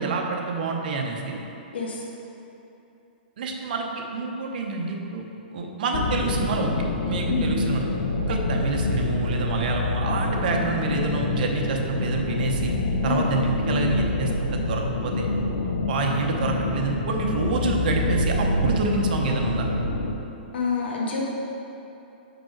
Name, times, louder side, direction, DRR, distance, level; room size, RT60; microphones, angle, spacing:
voice 1, 0.0-1.4 3.4-3.9 4.1-5.2 5.5-6.7 7.1-7.8 8.3-12.7 13.0-15.3 15.9-19.7, right 4 dB, 60° right, 1 dB, 0.8 m, -27 dB
voice 2, 1.7-2.0 7.3-7.4 13.1-13.2 20.5-21.2, left 5 dB, 85° left, -2 dB, 1.3 m, -27 dB
sound 1, 5.9-20.1, left 2 dB, 55° left, 0.6 m, -26 dB
5.1 x 4.7 x 4.5 m, 2.9 s
hypercardioid pair, 165°, 6 cm